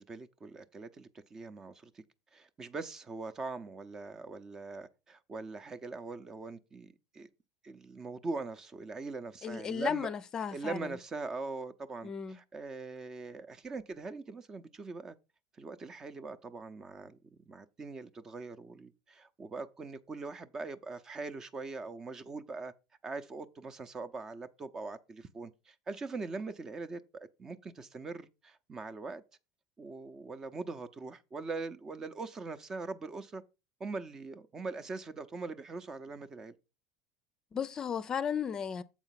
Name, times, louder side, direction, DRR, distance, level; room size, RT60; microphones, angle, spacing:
voice 1, 0.0-2.0 2.3-7.3 7.6-10.1 10.5-15.2 15.6-22.7 23.0-29.2 29.8-33.4 33.8-36.5, right 3 dB, 25° right, 0.8 m, -42 dB
voice 2, 9.4-10.8 12.0-12.4 37.5-38.8, left 7 dB, 30° left, 0.6 m, -34 dB
7.3 x 4.4 x 5.8 m
supercardioid pair, 110°, 2 cm